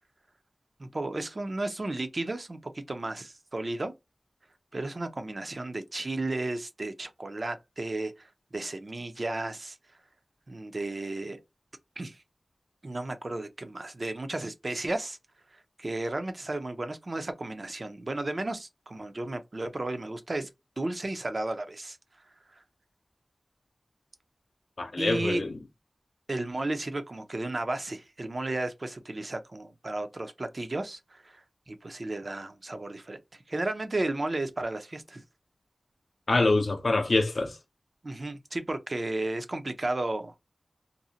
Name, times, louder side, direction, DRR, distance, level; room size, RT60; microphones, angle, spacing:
voice 1, 0.8-3.9 4.7-9.8 10.5-11.4 12.0-12.2 12.8-15.2 15.5-20.5 20.8-22.0 25.0-25.4 26.3-35.2 38.0-40.3, right 2 dB, 50° right, 0.5 m, -33 dB
voice 2, 24.8-25.6 36.3-37.6, left 2 dB, 65° left, 0.5 m, -25 dB
2.6 x 2.0 x 2.7 m
wide cardioid pair, 70°, 0 cm